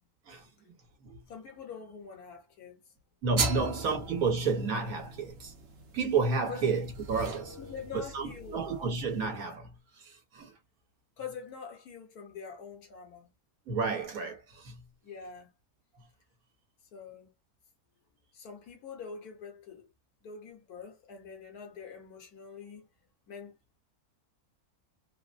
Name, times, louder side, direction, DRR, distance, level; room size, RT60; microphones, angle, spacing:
voice 1, 1.3-2.8 3.5-4.0 6.5-6.6 7.6-8.8 11.2-13.3 15.0-15.5 16.9-17.3 18.3-19.9 20.2-22.9 23.3-23.5, left 6 dB, 80° left, 1.6 m, -45 dB
voice 2, 3.2-5.5 5.9-7.6 7.9-9.7 10.0-10.5 13.7-14.9, right 4 dB, 70° right, 1.5 m, -31 dB
sound 1, 3.4-9.3, right 4 dB, 50° right, 1.0 m, -39 dB
3.7 x 2.1 x 2.5 m
omnidirectional pair, 1.6 m